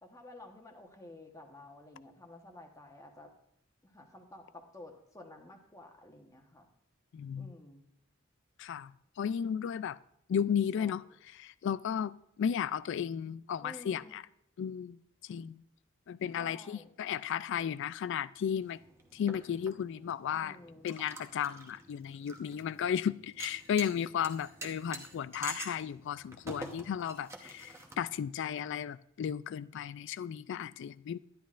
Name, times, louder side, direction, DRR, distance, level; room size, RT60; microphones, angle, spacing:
voice 1, 0.0-3.3 3.8-6.7 7.4-7.9 10.8-11.0 13.6-14.2 16.3-16.9 20.3-20.9, left 1 dB, 15° left, 1.1 m, -52 dB
voice 2, 7.1-7.5 8.6-8.9 9.2-10.0 10.3-11.0 11.4-14.2 14.6-15.0 15.3-15.6 16.1-18.8 19.1-20.6 20.8-31.2, left 8 dB, 65° left, 0.3 m, -34 dB
sound 1, 18.6-28.3, right 2 dB, 15° right, 0.9 m, -48 dB
11.5 x 10.5 x 2.5 m
head